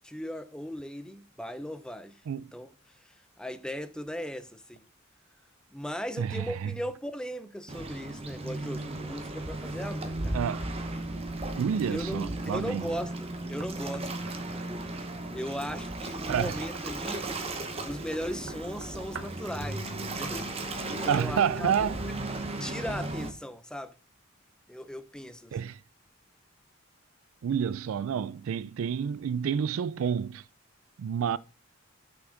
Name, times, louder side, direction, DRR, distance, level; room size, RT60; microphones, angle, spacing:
voice 1, 0.0-2.2 2.5-2.7 3.0-4.8 5.7-10.4 11.9-17.3 17.9-21.9 22.6-24.0 24.7-25.6, equal, 5° left, 0.4 m, -38 dB
voice 2, 6.2-6.7 10.3-10.7 11.6-12.8 16.3-16.6 19.2-19.3 21.1-22.0 25.5-25.8 27.4-30.5 31.0-31.4, right 7 dB, 80° right, 0.3 m, -29 dB
Waves surf, 7.7-23.3, right 2 dB, 30° right, 0.9 m, -35 dB
Knock, 13.6-19.5, right 5 dB, 65° right, 0.8 m, -49 dB
6.1 x 6.0 x 3.8 m
head